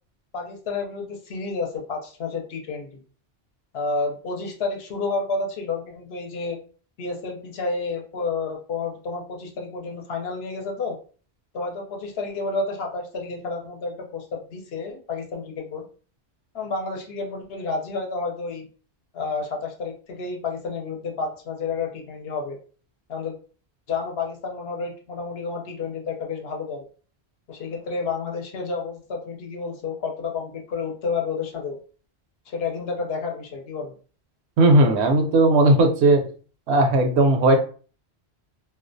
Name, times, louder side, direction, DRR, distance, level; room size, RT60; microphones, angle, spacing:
voice 1, 0.3-3.0 3.7-6.6 7.0-11.0 11.5-15.8 16.5-18.7 19.1-22.6 23.1-23.3 23.9-26.8 27.5-31.8 32.5-33.9, left 4 dB, 70° left, 2 dB, 0.8 m, -30 dB
voice 2, 34.6-36.2 36.7-37.6, right 2 dB, 80° right, 4 dB, 0.8 m, -17 dB
2.4 x 2.1 x 2.5 m, 0.40 s
omnidirectional pair, 1.1 m